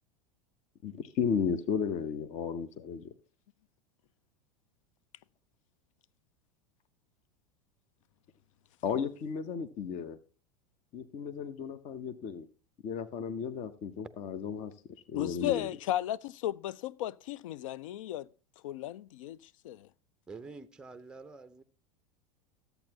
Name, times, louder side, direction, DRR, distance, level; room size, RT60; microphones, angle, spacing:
voice 1, 0.8-3.1 8.8-10.2 10.9-12.5 12.8-14.7 15.1-15.7, left 6 dB, 35° left, 0.8 m, -34 dB
voice 2, 15.1-18.3 18.6-19.4 19.6-19.9, left 13 dB, 55° left, 0.4 m, -35 dB
voice 3, 20.3-21.6, right 4 dB, 5° right, 0.6 m, -47 dB
13.5 x 8.0 x 2.9 m
figure-of-eight pair, 85°, 19 cm